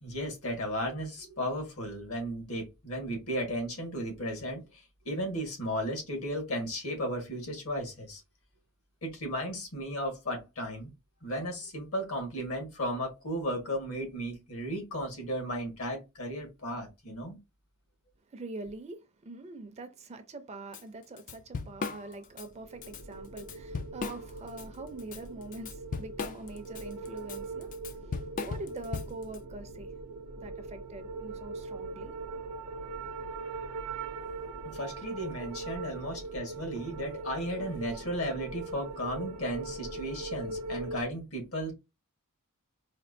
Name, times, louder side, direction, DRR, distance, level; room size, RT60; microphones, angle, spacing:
voice 1, 0.0-8.2 9.0-10.9 11.2-17.4 34.6-41.7, equal, 70° left, 1.5 m, -35 dB
voice 2, 18.3-29.9 30.4-32.1, right 2 dB, 30° right, 0.5 m, -44 dB
Drum kit / Drum, 20.7-20.8 21.2-22.5 22.8-23.0 23.4-24.6 25.0-29.4, left 5 dB, 35° left, 0.3 m, -37 dB
sound 1, 22.4-41.0, right 3 dB, 85° right, 0.5 m, -41 dB
4.3 x 2.3 x 2.6 m
head